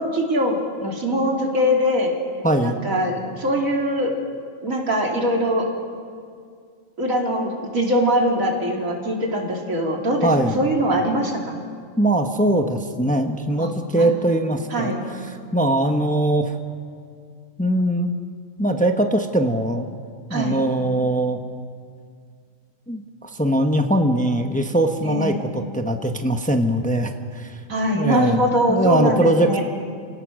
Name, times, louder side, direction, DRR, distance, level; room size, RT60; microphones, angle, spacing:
voice 1, 0.0-2.2 2.6-4.1 4.6-5.7 7.0-11.6 13.6-14.1 14.7-15.1 20.3-20.6 25.0-25.4 27.7-29.6, equal, 90° right, 0 dB, 3.4 m, -22 dB
voice 2, 2.4-2.8 10.2-10.6 12.0-14.9 15.5-16.5 17.6-18.1 18.6-19.9 20.3-21.4 22.9-27.6 27.9-28.4 28.7-29.6, right 1 dB, 5° left, 5 dB, 1.0 m, -21 dB
30.0 x 18.0 x 6.4 m, 2.2 s
omnidirectional pair, 1.4 m